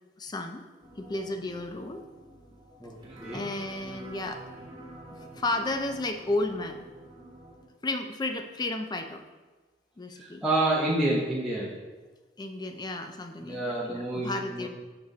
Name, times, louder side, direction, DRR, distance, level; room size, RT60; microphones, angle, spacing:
voice 1, 0.2-0.6 1.0-2.0 3.3-4.4 5.4-6.8 7.8-9.2 10.0-10.5 12.4-14.7, left 2 dB, 20° left, 6 dB, 0.4 m, -33 dB
sound 1, 0.8-7.6, right 1 dB, 25° right, 1.3 m, -48 dB
voice 2, 10.1-11.7 13.4-14.7, right 2 dB, ahead, -7 dB, 0.7 m, -28 dB
6.0 x 4.9 x 4.1 m, 1.3 s
head